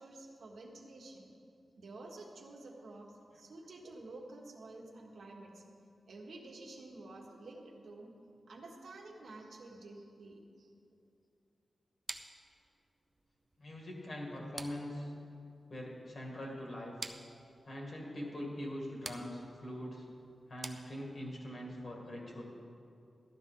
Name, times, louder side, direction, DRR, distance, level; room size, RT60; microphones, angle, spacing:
voice 1, 0.0-1.3 1.8-5.6 6.0-8.1 8.5-10.7, right 2 dB, 75° right, 0 dB, 1.4 m, -50 dB
sound 1, 12.1-21.4, right 2 dB, 25° right, 0.5 m, -50 dB
voice 2, 13.6-15.1 15.7-16.9 17.7-20.0 20.5-22.4, equal, 50° left, -2 dB, 2.3 m, -42 dB
13.0 x 11.5 x 3.8 m, 2.5 s
wide cardioid pair, 150°, 0 cm